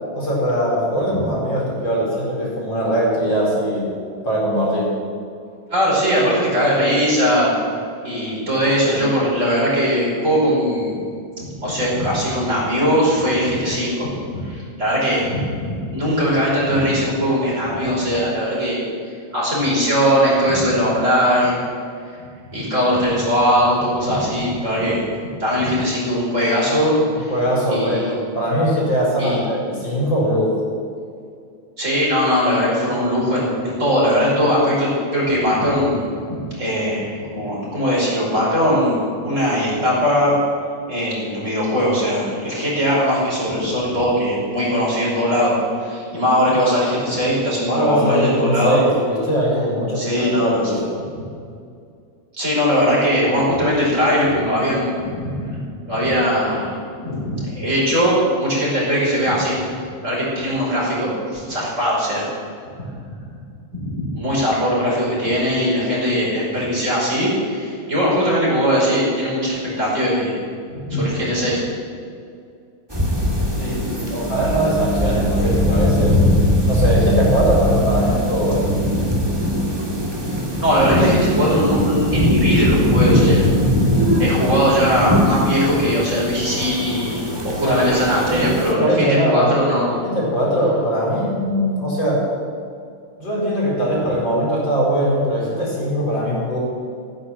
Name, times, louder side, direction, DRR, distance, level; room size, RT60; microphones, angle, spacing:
voice 1, 0.1-4.0 4.2-5.0 27.3-28.1 28.3-30.6 47.7-50.8 73.6-76.3 76.7-78.7 87.6-87.9 88.3-89.6 89.9-92.3 93.2-96.6, equal, 60° left, -4 dB, 5.6 m, -21 dB
voice 2, 5.7-7.5 8.0-10.9 11.4-18.8 19.3-21.6 22.5-25.0 25.4-27.3 27.7-28.1 29.2-29.4 31.8-36.1 36.6-40.4 40.9-45.5 45.8-48.8 50.0-50.7 51.1-51.3 52.3-55.6 55.9-56.7 57.0-62.3 63.0-63.1 63.8-70.4 70.8-71.6 80.6-83.5 84.2-89.9, equal, 35° right, -5 dB, 5.6 m, -20 dB
sound 1, 72.9-88.7, left 1 dB, 10° right, 2.0 m, -20 dB
16.5 x 9.8 x 7.9 m, 2.4 s
omnidirectional pair, 2.3 m